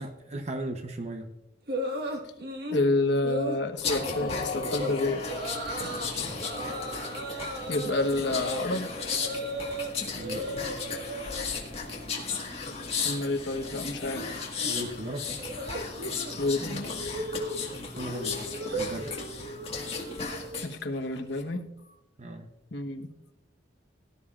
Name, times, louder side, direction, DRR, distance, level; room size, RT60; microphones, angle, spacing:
voice 1, 0.0-1.3 5.8-6.5 10.1-10.8 14.6-15.4 17.7-19.2 22.2-22.5, right 1 dB, 35° right, 6 dB, 0.8 m, -38 dB
sound 1, 1.7-2.8 3.2-3.6 4.0-4.3 4.6-4.9 5.3-6.1 6.4-9.9 10.2-11.5 11.8-12.2 12.5-20.7, right 1 dB, 50° right, 1.7 m, -37 dB
voice 2, 2.7-5.2 7.7-8.9 13.0-14.4 16.4-17.3 20.6-21.6 22.7-23.1, left 2 dB, 60° left, 5 dB, 1.1 m, -29 dB
sound 2, 3.8-20.8 21.2-21.4, left 4 dB, 30° left, 1.7 m, -35 dB
18.0 x 12.0 x 2.5 m, 0.89 s
head